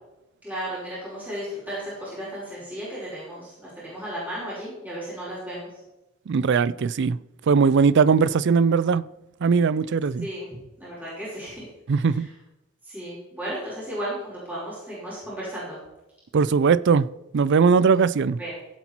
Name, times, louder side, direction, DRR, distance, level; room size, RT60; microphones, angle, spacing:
voice 1, 0.4-5.7 10.2-10.5 10.8-11.7 12.0-12.3 12.8-15.8 18.4-18.5, right 1 dB, 10° right, 5.0 m, -34 dB
voice 2, 6.3-7.2 7.5-9.0 9.4-10.3 11.9-12.3 16.3-17.1 17.3-18.4, right 5 dB, 60° right, 0.4 m, -19 dB
15.0 x 8.3 x 4.5 m
head